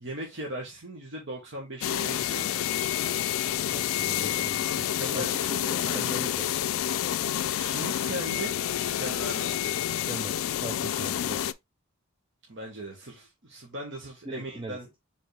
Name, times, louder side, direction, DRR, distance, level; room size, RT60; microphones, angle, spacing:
voice 1, 0.0-3.2 4.8-6.1 7.5-9.5 12.5-14.9, right 1 dB, 55° right, 1.2 m, -39 dB
sound 1, 1.8-11.5, left 11 dB, 80° left, 0.3 m, -29 dB
voice 2, 3.7-4.9 5.1-6.5 9.9-11.5 14.2-14.8, right 1 dB, 25° right, 0.5 m, -40 dB
4.6 x 3.6 x 3.2 m
head